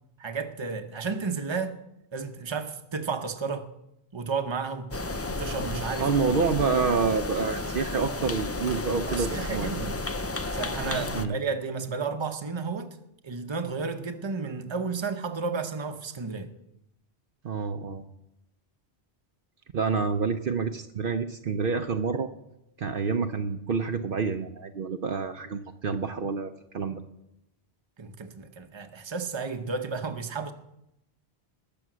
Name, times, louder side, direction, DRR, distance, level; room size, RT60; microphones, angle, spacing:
voice 1, 0.2-1.8 2.1-3.7 4.1-4.9 5.3-6.1 9.1-10.0 10.5-13.0 13.2-16.5 28.0-30.5, right 4 dB, 25° right, 0.8 m, -32 dB
sound 1, 4.9-11.3, left 2 dB, 25° left, 0.3 m, -32 dB
voice 2, 6.0-9.7 11.1-11.4 17.4-18.0 19.7-22.3 22.8-27.0, right 5 dB, 60° right, 0.8 m, -28 dB
20.5 x 6.9 x 6.2 m
omnidirectional pair, 1.1 m